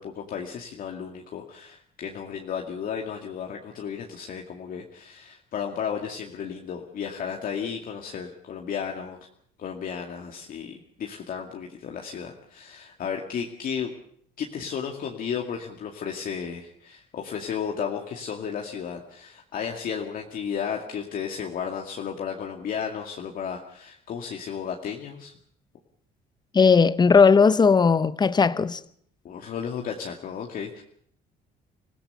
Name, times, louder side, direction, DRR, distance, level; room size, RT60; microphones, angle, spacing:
voice 1, 0.0-9.2 9.6-13.9 14.4-25.3 29.2-30.8, left 7 dB, 55° left, 2.2 m, -33 dB
voice 2, 26.5-28.8, left 5 dB, 25° left, 0.9 m, -17 dB
26.0 x 16.5 x 6.9 m
cardioid pair, 110°, 17 cm